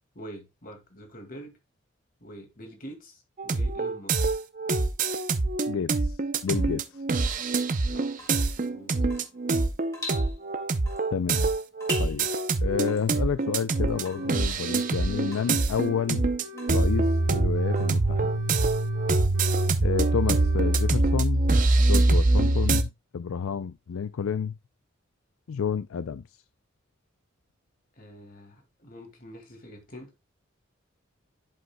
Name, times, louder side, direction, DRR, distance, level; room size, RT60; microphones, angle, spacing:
voice 1, 0.1-1.6 2.2-4.2 7.9-8.2 8.6-9.1 27.9-30.1, equal, 45° left, 2.1 m, -45 dB
sound 1, 3.4-22.8, right 2 dB, 40° right, 0.6 m, -24 dB
voice 2, 5.7-6.2 6.4-7.0 11.1-11.5 12.0-12.3 12.6-16.3 16.7-18.5 19.8-21.5 21.8-24.6 25.5-26.2, left 6 dB, 85° left, 0.4 m, -30 dB
Water tap faucet / Drip, 6.3-18.5, left 1 dB, 15° left, 1.8 m, -45 dB
sound 2, 13.9-14.3 14.6-16.1 16.4-17.9 18.2-19.7 20.0-20.9, left 4 dB, 60° right, 2.9 m, -44 dB
11.0 x 5.3 x 2.2 m
head